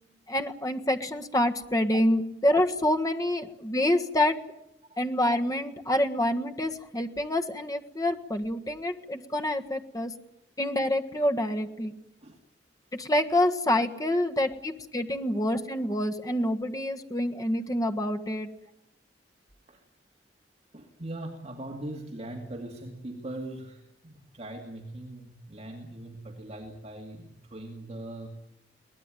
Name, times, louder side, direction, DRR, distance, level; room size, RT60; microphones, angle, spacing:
voice 1, 0.3-4.4 5.0-10.1 10.6-11.9 12.9-18.5, left 1 dB, 20° left, 5 dB, 1.5 m, -27 dB
voice 2, 20.7-28.3, right 1 dB, 35° right, 1 dB, 2.4 m, -41 dB
23.0 x 18.5 x 9.2 m, 0.82 s
head